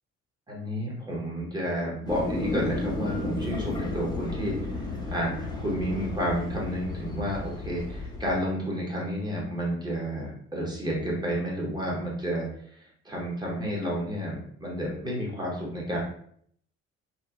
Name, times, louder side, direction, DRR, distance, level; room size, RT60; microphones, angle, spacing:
voice 1, 0.5-12.5 12.8-16.0, equal, 10° right, -4 dB, 1.1 m, -31 dB
sound 1, 2.1-8.4, left 2 dB, 10° left, 0.7 m, -33 dB
2.8 x 2.6 x 2.4 m, 0.65 s
figure-of-eight pair, 50°, 36 cm